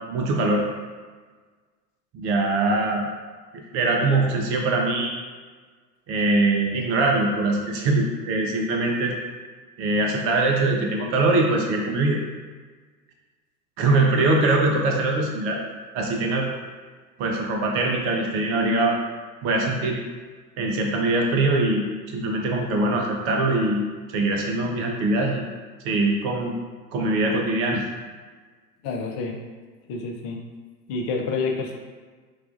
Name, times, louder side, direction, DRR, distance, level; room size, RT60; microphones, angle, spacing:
voice 1, 0.1-0.6 2.1-3.1 3.7-5.1 6.1-9.1 9.8-12.2 13.8-15.6 15.9-16.5 17.2-18.9 19.4-20.0 20.6-21.9 22.1-23.8 24.1-25.5 25.8-26.5 26.9-27.9, right 2 dB, 30° right, 0 dB, 0.5 m, -22 dB
voice 2, 28.8-29.4 29.9-30.4 30.9-31.8, left 4 dB, 35° left, 2 dB, 0.5 m, -28 dB
4.8 x 2.3 x 2.4 m, 1.5 s
figure-of-eight pair, 90°, 49 cm